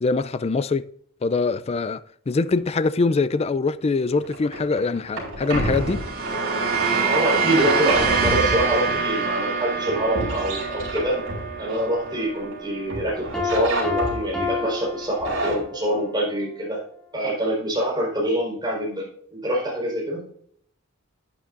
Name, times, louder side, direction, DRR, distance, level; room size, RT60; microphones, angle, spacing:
voice 1, 0.0-0.9 1.2-2.0 2.3-6.0, left 3 dB, 30° left, 0.4 m, -23 dB
sound 1, 4.2-12.5 12.9-14.5 15.0-15.6, right 1 dB, 70° right, 4.5 m, -28 dB
sound 2, 5.6-14.1, right 5 dB, 45° right, 2.4 m, -27 dB
voice 2, 7.0-11.2 11.6-16.8 17.1-20.3, right 1 dB, 20° right, 4.5 m, -25 dB
Piano, 13.3-15.9, left 4 dB, ahead, 2.0 m, -29 dB
11.0 x 9.8 x 2.6 m
head